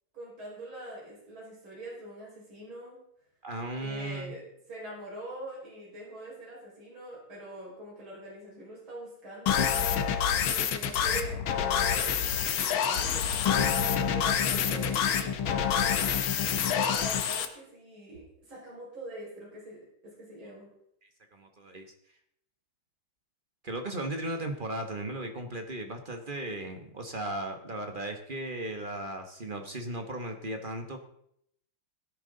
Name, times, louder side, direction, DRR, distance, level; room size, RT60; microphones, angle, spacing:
voice 1, 0.1-3.0 3.8-4.4 4.7-9.7 10.4-13.7 14.1-16.2 16.7-20.7, right 1 dB, 70° right, -5 dB, 6.1 m, -43 dB
voice 2, 3.4-4.3 21.3-21.9 23.6-31.0, right 1 dB, 30° right, 5 dB, 1.0 m, -36 dB
sound 1, 9.5-17.5, left 8 dB, 75° left, 1.8 m, -27 dB
17.0 x 10.5 x 3.8 m, 0.72 s
omnidirectional pair, 2.3 m